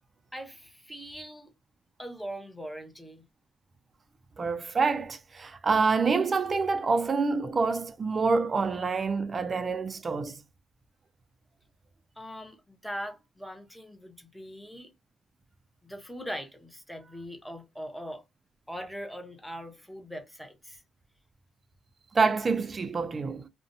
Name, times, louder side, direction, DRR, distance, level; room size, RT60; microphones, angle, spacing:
voice 1, 0.3-1.5 2.0-3.3 12.2-14.9 15.8-18.2 18.7-20.8, equal, ahead, 0.7 m, -41 dB
voice 2, 4.4-10.4 22.1-23.5, right 4 dB, 35° right, 0.3 m, -27 dB
2.5 x 2.1 x 2.6 m
cardioid pair, 90°, 0 cm